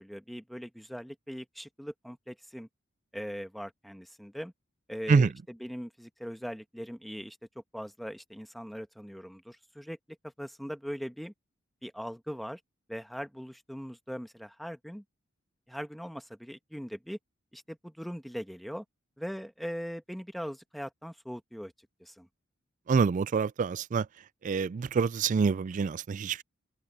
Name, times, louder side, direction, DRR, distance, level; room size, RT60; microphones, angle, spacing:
voice 1, 0.0-2.7 3.1-4.5 4.9-10.0 10.2-11.3 11.8-12.6 12.9-15.0 15.7-17.2 17.5-18.8 19.2-21.7 22.0-22.3, equal, ahead, 1.3 m, -40 dB
voice 2, 22.9-24.1 24.4-26.4, right 5 dB, 40° right, 0.3 m, -26 dB
open air
head